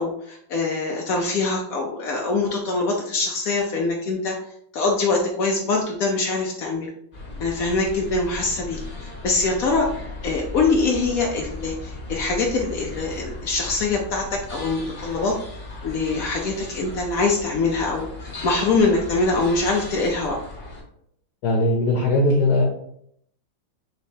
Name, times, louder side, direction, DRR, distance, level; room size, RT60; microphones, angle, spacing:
voice 1, 0.0-4.3 4.7-6.9 7.4-9.9 10.2-15.4 15.8-20.4, left 3 dB, 90° left, 0 dB, 0.7 m, -23 dB
sound 1, 7.1-20.8, left 2 dB, 40° left, 0.8 m, -37 dB
voice 2, 21.4-22.6, left 1 dB, 60° left, 1 dB, 1.1 m, -19 dB
6.1 x 3.1 x 2.7 m, 0.71 s
omnidirectional pair, 2.3 m